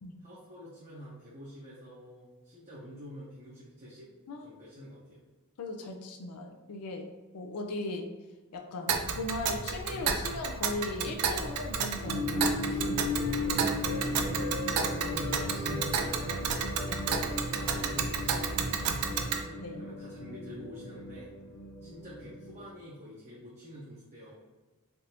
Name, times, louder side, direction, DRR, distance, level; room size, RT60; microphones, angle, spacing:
voice 1, 0.2-4.1 4.4-5.2 13.5-14.6 14.9-16.7 17.3-18.7 19.7-21.3 21.8-24.3, equal, 35° right, -8 dB, 0.7 m, -47 dB
voice 2, 5.6-7.1 7.3-8.1 8.5-13.0 14.2-14.3 16.9-17.1 19.1-19.8, left 2 dB, 85° left, 3 dB, 0.4 m, -38 dB
Tick, 8.9-19.4, right 6 dB, 85° right, 0.4 m, -32 dB
Wind instrument woodwind instrument, 11.2-14.1 14.3-17.7, left 2 dB, 20° left, 0.4 m, -45 dB
sound 1, 12.1-22.6, left 2 dB, 70° left, 0.9 m, -36 dB
3.4 x 2.5 x 2.8 m, 1.3 s
head